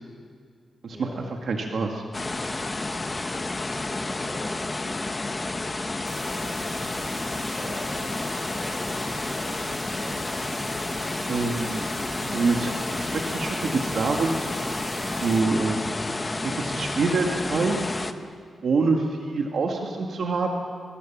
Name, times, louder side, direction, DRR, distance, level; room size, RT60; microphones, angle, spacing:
voice 1, 0.9-1.4 3.7-4.7 7.5-10.2, equal, 15° right, 0 dB, 6.4 m, -43 dB
voice 2, 1.5-2.0 11.3-11.9 12.2-14.3 15.2-15.8 16.4-17.8 18.6-20.5, right 4 dB, 60° right, 1 dB, 1.9 m, -25 dB
sound 1, 2.1-18.1, left 2 dB, 20° left, 1.0 m, -30 dB
sound 2, 6.1-15.4, right 4 dB, 85° right, 3.3 m, -41 dB
24.0 x 22.0 x 7.4 m, 2.1 s
wide cardioid pair, 135°, 0 cm